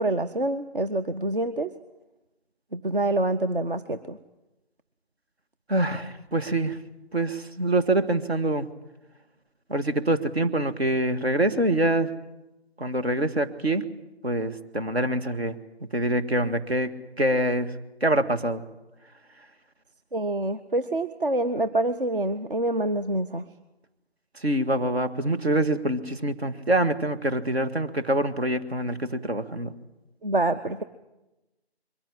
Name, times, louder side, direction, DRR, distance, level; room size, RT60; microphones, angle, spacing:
voice 1, 0.0-1.7 2.7-4.2 20.1-23.4 30.2-30.8, right 2 dB, 55° right, 8 dB, 1.0 m, -26 dB
voice 2, 5.7-6.8 7.1-8.7 9.7-12.1 12.8-13.9 14.2-15.6 15.9-17.7 18.0-18.6 24.4-29.7, right 1 dB, 70° right, 7 dB, 1.9 m, -25 dB
22.5 x 15.0 x 9.7 m, 1.0 s
figure-of-eight pair, 160°, 33 cm